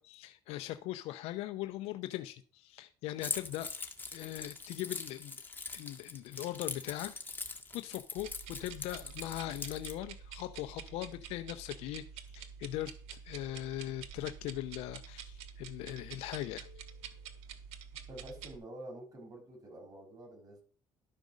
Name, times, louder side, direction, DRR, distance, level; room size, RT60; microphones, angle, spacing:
voice 1, 0.0-3.7 4.1-5.4 5.7-12.0 12.3-16.9, left 14 dB, 80° left, 0.6 m, -40 dB
Keys jangling, 3.2-9.9, left 3 dB, 20° left, 1.7 m, -42 dB
sound 1, 8.2-18.6, right 7 dB, 80° right, 1.3 m, -48 dB
voice 2, 18.1-20.6, right 1 dB, 35° right, 5.6 m, -48 dB
12.0 x 5.2 x 6.3 m
cardioid pair, 95°, 10 cm